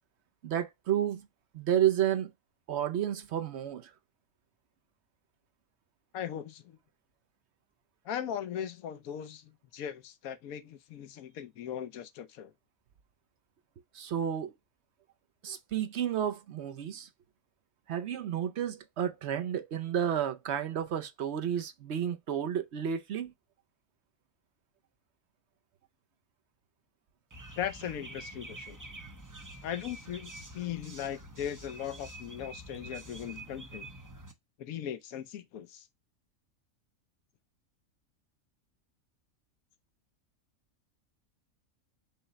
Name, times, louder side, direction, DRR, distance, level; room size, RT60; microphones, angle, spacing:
voice 1, 0.4-1.3 1.5-2.3 2.7-3.9 13.9-14.5 15.4-17.1 17.9-23.3, right 9 dB, 60° right, 0.8 m, -31 dB
voice 2, 6.1-6.8 8.0-12.5 27.6-28.8 29.6-33.9 34.6-35.9, left 9 dB, 85° left, 1.2 m, -38 dB
sound 1, 27.3-34.3, right 2 dB, 20° right, 0.5 m, -47 dB
5.6 x 2.2 x 3.9 m
omnidirectional pair, 1.4 m